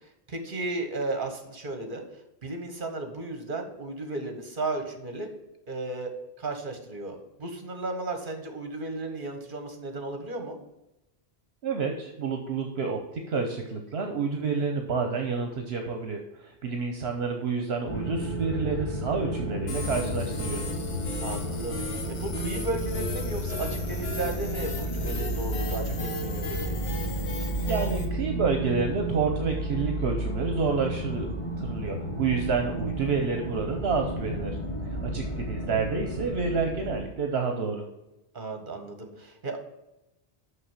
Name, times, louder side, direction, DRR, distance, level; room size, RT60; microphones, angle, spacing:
voice 1, 0.3-2.0 2.4-5.3 5.7-6.1 6.4-10.6 21.2-21.8 22.1-26.7 38.3-39.6, right 2 dB, 50° right, 5 dB, 1.7 m, -34 dB
voice 2, 11.6-20.6 27.6-31.3 31.6-34.6 34.8-37.8, right 5 dB, 70° right, 4 dB, 1.2 m, -29 dB
sound 1, 17.9-37.0, right 1 dB, 30° left, 1.5 m, -32 dB
sound 2, 19.7-28.1, left 3 dB, 65° left, 1.5 m, -38 dB
6.6 x 6.0 x 7.3 m, 0.94 s
omnidirectional pair, 1.1 m